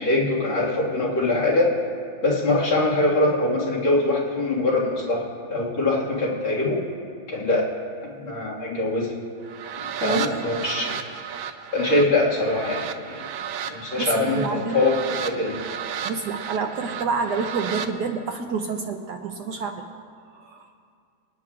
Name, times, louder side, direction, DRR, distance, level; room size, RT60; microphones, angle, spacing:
voice 1, 0.0-1.8 2.2-6.8 7.3-7.7 8.0-9.1 10.0-11.0 11.7-13.2 13.7-15.6, left 2 dB, 75° left, -6 dB, 2.7 m, -23 dB
sound 1, 9.4-17.9, right 8 dB, 90° right, 0.8 m, -34 dB
voice 2, 10.0-10.5 14.0-14.9 16.0-19.8 20.3-20.7, right 4 dB, 70° right, 4 dB, 1.1 m, -28 dB
26.0 x 9.3 x 2.4 m, 2.2 s
omnidirectional pair, 2.2 m